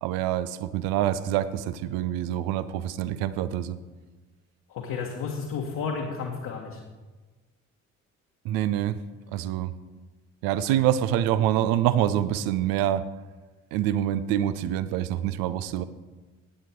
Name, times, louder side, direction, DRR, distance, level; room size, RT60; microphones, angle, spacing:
voice 1, 0.0-3.8 8.4-9.0 9.3-9.7 10.4-13.0 13.7-15.8, right 11 dB, 65° right, 14 dB, 0.8 m, -26 dB
voice 2, 4.7-6.8 10.7-10.8, left 5 dB, 55° left, -1 dB, 1.8 m, -32 dB
16.0 x 9.3 x 4.7 m, 1.3 s
figure-of-eight pair, 45°, 38 cm